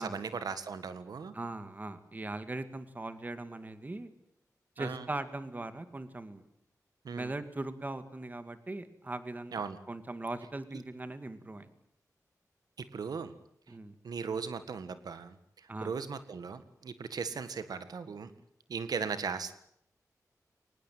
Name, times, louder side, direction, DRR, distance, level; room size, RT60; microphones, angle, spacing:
voice 1, 0.0-1.3 4.8-5.0 7.0-7.3 9.5-9.8 12.8-13.3 14.0-18.3 18.7-19.5, right 5 dB, 90° right, 12 dB, 1.7 m, -38 dB
voice 2, 1.3-4.1 4.8-6.5 7.1-11.7 13.7-13.9 15.7-16.0, right 2 dB, 25° right, 11 dB, 2.2 m, -40 dB
23.5 x 20.0 x 9.3 m, 0.71 s
wide cardioid pair, 120°, 6 cm